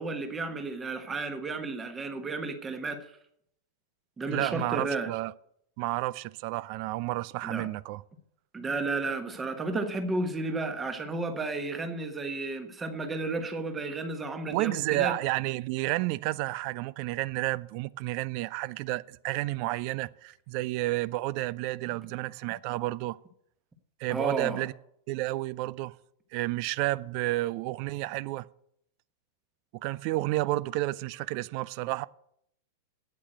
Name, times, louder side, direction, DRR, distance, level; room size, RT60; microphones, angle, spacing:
voice 1, 0.0-3.0 4.2-5.1 7.4-7.7 8.5-15.1 24.1-24.6, right 3 dB, 15° right, 1.4 m, -32 dB
voice 2, 4.3-5.3 5.8-8.0 14.5-23.2 24.0-24.7 25.1-25.9 26.3-28.5 29.8-32.1, right 18 dB, 45° right, 0.4 m, -31 dB
8.8 x 8.5 x 7.8 m
figure-of-eight pair, 95°, 0 cm